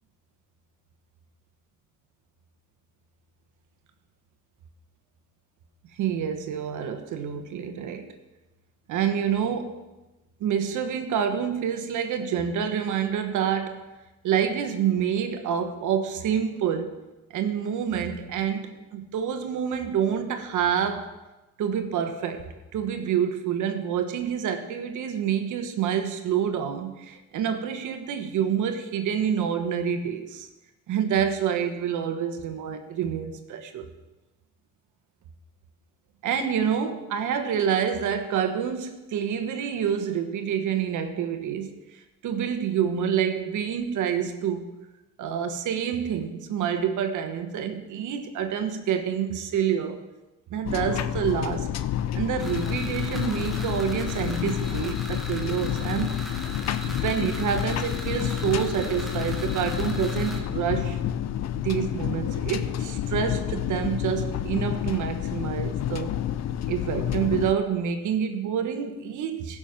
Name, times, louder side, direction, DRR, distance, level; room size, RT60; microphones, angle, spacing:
voice 1, 6.0-8.1 8.9-9.8 10.4-13.8 14.2-17.0 17.3-21.1 21.6-30.5 30.9-33.9 36.2-41.7 42.2-44.7 45.2-50.0 50.5-51.7 52.1-56.2 56.9-61.0 61.6-66.1 66.7-69.6, right 8 dB, 80° right, 7 dB, 1.3 m, -27 dB
sound 1, 50.6-67.5, left 10 dB, 60° left, 0.6 m, -29 dB
sound 2, 52.4-60.4, equal, ahead, 1.9 m, -40 dB
15.5 x 6.2 x 5.9 m, 1.1 s
cardioid pair, 90°, 30 cm